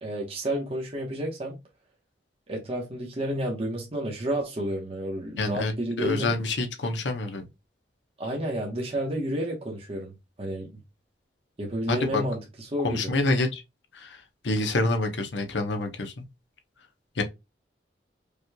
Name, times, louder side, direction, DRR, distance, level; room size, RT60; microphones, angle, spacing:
voice 1, 0.0-1.6 2.5-6.3 8.2-10.7 11.6-13.1, right 1 dB, 35° right, 1.0 m, -31 dB
voice 2, 5.4-5.7 6.0-7.5 11.9-12.2 12.8-13.6 13.9-16.2 17.2-17.3, left 2 dB, 85° left, 0.9 m, -27 dB
5.1 x 3.1 x 2.2 m
head